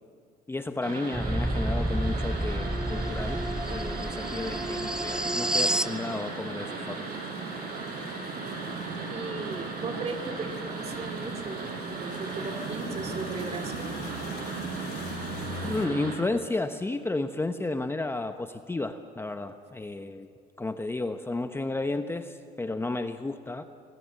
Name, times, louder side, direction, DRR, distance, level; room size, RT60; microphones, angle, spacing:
voice 1, 0.5-7.0 15.6-20.3 20.6-23.6, left 2 dB, 15° left, 8 dB, 1.0 m, -32 dB
sound 1, 0.8-16.1, right 4 dB, 65° right, 5.6 m, -36 dB
sound 2, 1.1-6.0, right 1 dB, 5° right, 0.6 m, -29 dB
sound 3, 3.1-15.9, left 7 dB, 90° left, 2.8 m, -49 dB
voice 2, 9.1-14.0, right 3 dB, 40° right, 6 dB, 2.7 m, -37 dB
26.0 x 19.0 x 7.7 m, 2.2 s
cardioid pair, 110°, 17 cm